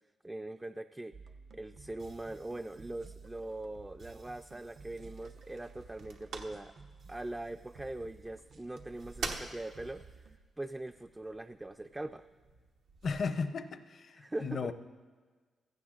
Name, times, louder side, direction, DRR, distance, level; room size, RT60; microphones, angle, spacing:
voice 1, 0.2-1.2 1.5-6.7 7.1-10.0 10.6-12.3 14.2-14.7, right 2 dB, 15° right, 8 dB, 0.3 m, -41 dB
sound 1, 1.1-10.4, right 4 dB, 65° right, 0.7 m, -54 dB
sound 2, 3.5-13.2, right 4 dB, 90° right, 1.0 m, -48 dB
voice 2, 13.0-14.7, left 5 dB, 60° left, 10 dB, 0.6 m, -35 dB
16.0 x 14.0 x 2.5 m, 1.5 s
cardioid pair, 75°, 0 cm